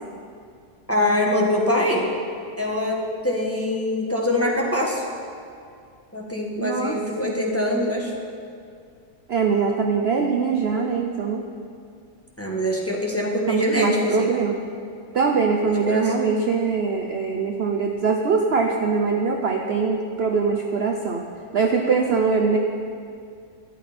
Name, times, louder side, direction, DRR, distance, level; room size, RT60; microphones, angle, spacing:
voice 1, 0.9-2.1 2.6-5.0 6.1-8.1 12.4-14.3 15.6-16.3, left 1 dB, 10° left, -2 dB, 1.3 m, -23 dB
voice 2, 6.6-7.4 9.3-11.5 13.5-14.6 15.1-21.2 21.5-22.6, right 5 dB, 50° right, 2 dB, 0.8 m, -22 dB
13.5 x 11.5 x 4.3 m, 2.3 s
omnidirectional pair, 1.7 m